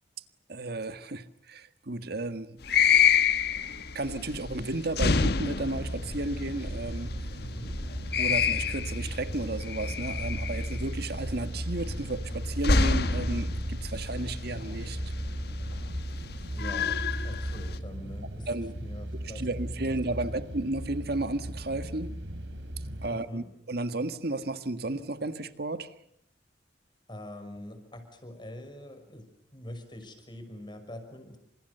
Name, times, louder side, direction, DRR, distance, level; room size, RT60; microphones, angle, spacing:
voice 1, 0.5-2.6 4.0-7.1 8.2-15.0 18.5-18.7 19.4-22.1 23.0-25.9, right 2 dB, 60° right, 10 dB, 1.7 m, -33 dB
sound 1, 2.6-17.8, left 5 dB, 60° left, 1.4 m, -29 dB
sound 2, 5.6-23.1, right 1 dB, 80° right, 2.9 m, -36 dB
voice 2, 7.4-7.8 16.5-19.9 20.2-20.6 23.1-23.5 27.1-31.4, left 1 dB, 25° left, 7 dB, 6.0 m, -44 dB
29.0 x 27.0 x 6.8 m, 0.72 s
head